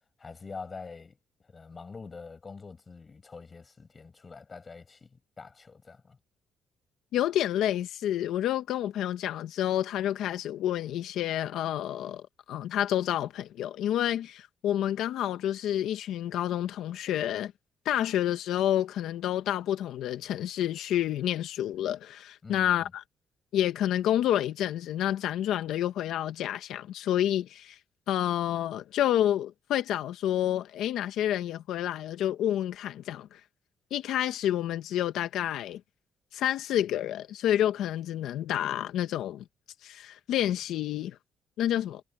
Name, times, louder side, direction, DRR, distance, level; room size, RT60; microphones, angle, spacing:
voice 1, 0.2-1.2 1.5-6.2 22.4-22.9, left 4 dB, 35° left, 5.9 m, -45 dB
voice 2, 7.1-17.5 17.8-23.0 23.5-27.8 28.1-33.4 33.9-35.8 36.3-39.4 39.8-41.2 41.6-42.0, left 11 dB, 85° left, 1.2 m, -29 dB
cardioid pair, 90°, 0 cm